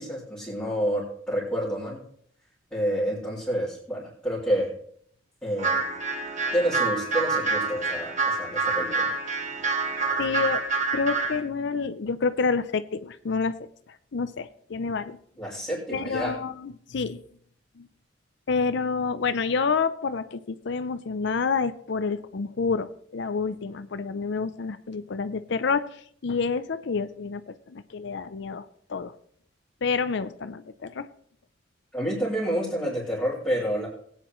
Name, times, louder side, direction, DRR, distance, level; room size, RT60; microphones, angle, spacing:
voice 1, 0.0-2.0 2.7-4.7 5.4-5.9 6.5-9.1 15.4-16.4 31.9-33.9, equal, 5° left, -10 dB, 3.2 m, -28 dB
sound 1, 5.6-11.4, right 3 dB, 40° right, 1.6 m, -27 dB
voice 2, 10.2-10.7 10.9-13.6 14.1-15.2 15.9-17.2 17.8-17.9 18.5-29.1 29.8-31.1, left 4 dB, 65° left, 13 dB, 0.5 m, -28 dB
19.0 x 9.1 x 3.1 m, 0.62 s
head